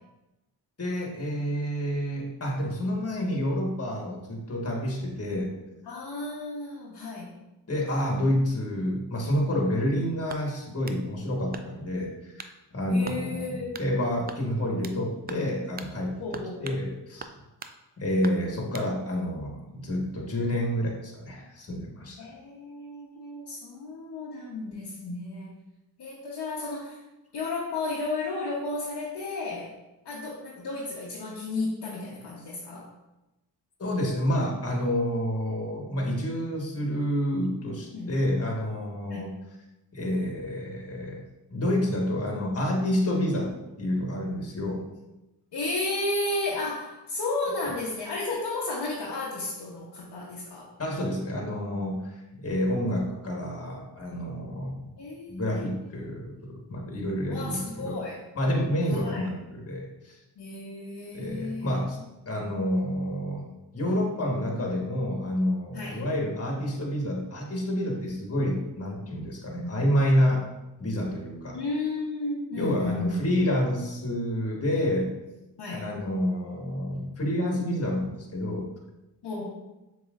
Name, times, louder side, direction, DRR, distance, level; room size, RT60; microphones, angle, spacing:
voice 1, 0.8-5.6 7.7-17.3 18.0-22.2 33.8-39.3 39.9-41.2 41.5-44.9 50.8-54.9 55.3-58.0 58.3-60.2 61.1-62.0 62.2-63.5 63.7-70.5 70.8-71.6 72.5-75.2 75.7-78.7, equal, 35° left, -1 dB, 1.4 m, -29 dB
voice 2, 5.9-7.4 12.9-13.8 16.2-16.7 22.2-25.5 26.0-27.0 27.3-29.7 30.0-32.9 37.9-38.2 39.0-39.3 45.5-50.7 55.0-55.5 57.3-58.2 58.9-59.3 60.4-61.8 65.7-66.0 69.6-69.8 71.5-73.2 75.6-75.9 79.2-79.5, left 2 dB, 60° left, -6 dB, 1.1 m, -33 dB
sound 1, 10.3-11.0 11.5-11.9 12.4-12.6 13.0-13.2 13.7-13.9 14.3-15.0 15.3-15.5 15.8-15.9 16.3-16.8 17.2-17.8 18.2-18.9, right 5 dB, 25° right, 0.3 m, -42 dB
7.0 x 3.0 x 2.5 m, 0.99 s
supercardioid pair, 45°, 44 cm